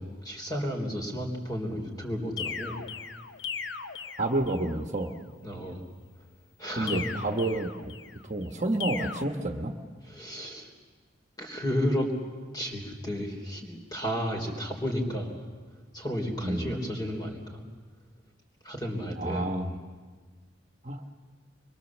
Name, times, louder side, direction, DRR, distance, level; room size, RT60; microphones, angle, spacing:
voice 1, 0.0-2.8 5.4-5.8 6.6-7.0 10.0-10.7 11.4-12.1 12.5-15.4 15.9-17.6 18.6-19.6, equal, 20° left, 2 dB, 3.4 m, -32 dB
sound 1, 2.4-4.8 6.9-8.2 8.8-9.2, left 6 dB, 65° left, 0.9 m, -37 dB
voice 2, 4.2-5.1 6.8-7.9 8.2-9.7 16.4-16.7 19.2-19.7 20.8-21.0, right 2 dB, 40° right, 4 dB, 1.3 m, -29 dB
24.5 x 22.5 x 7.3 m, 1.5 s
head